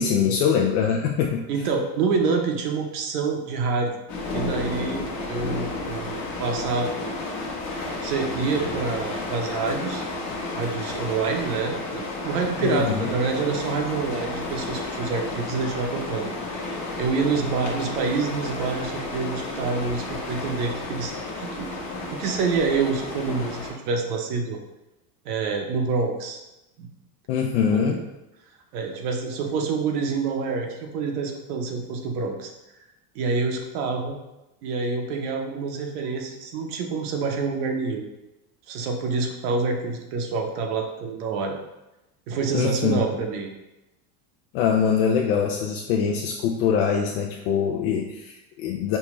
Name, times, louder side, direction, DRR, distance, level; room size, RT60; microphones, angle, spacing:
voice 1, 0.0-1.5 12.6-13.1 27.3-28.0 42.5-43.1 44.5-49.0, left 7 dB, 70° left, 0 dB, 0.6 m, -23 dB
voice 2, 1.5-3.9 4.3-7.2 8.0-10.0 10.5-21.1 21.4-21.7 22.0-24.6 25.2-26.4 26.8-26.9 27.7-28.1 28.7-32.5 33.1-34.2 34.6-38.1 38.7-41.6 42.3-43.5, right 4 dB, 75° right, 2 dB, 0.9 m, -27 dB
sound 1, 4.1-23.7, left 2 dB, 35° left, 1.0 m, -32 dB
5.4 x 2.2 x 3.1 m, 0.96 s
supercardioid pair, 140°, 47 cm